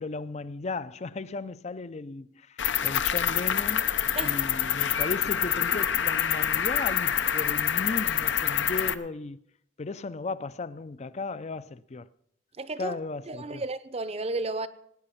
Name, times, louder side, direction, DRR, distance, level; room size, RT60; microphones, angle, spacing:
voice 1, 0.0-3.8 4.2-9.4 9.8-12.1 12.8-13.6, left 3 dB, 35° left, 0.5 m, -36 dB
Cricket, 2.6-8.9, left 9 dB, 80° left, 0.7 m, -26 dB
voice 2, 12.6-13.0 13.3-14.7, right 2 dB, 35° right, 0.7 m, -33 dB
19.0 x 9.8 x 5.7 m
head